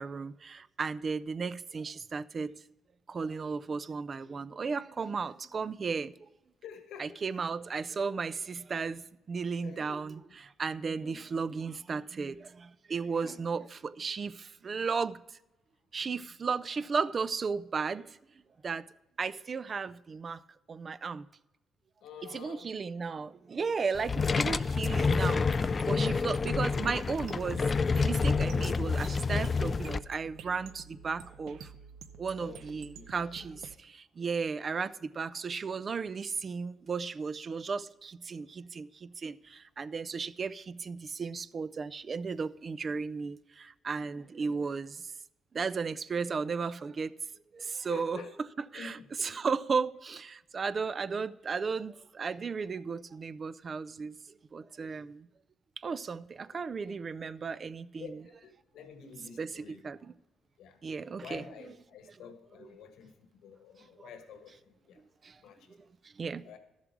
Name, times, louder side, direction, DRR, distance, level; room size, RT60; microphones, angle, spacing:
voice 1, 0.0-2.5 3.1-6.1 7.0-10.2 10.6-15.2 15.9-18.2 18.6-18.9 19.2-20.4 20.7-21.3 22.2-27.6 27.9-31.7 32.2-45.1 45.5-47.1 47.5-48.2 48.7-54.1 54.5-55.3 55.8-58.2 59.4-60.1 60.8-61.4 65.2-65.4 66.2-66.5, right 5 dB, 40° right, 0.5 m, -35 dB
voice 2, 6.6-7.2 9.6-10.0 10.9-11.2 13.2-13.6 22.0-22.7 32.3-32.6 32.9-33.5 47.8-48.4 48.7-49.5 56.5-56.6 58.0-59.8 60.6-60.9 61.2-65.0 65.4-65.8 66.4-66.6, left 7 dB, 85° left, 1.5 m, -49 dB
sound 1, 23.9-30.0, left 4 dB, 35° left, 0.3 m, -28 dB
sound 2, 25.1-33.7, right 7 dB, 80° right, 0.7 m, -49 dB
13.0 x 7.4 x 4.7 m
cardioid pair, 90°, 0 cm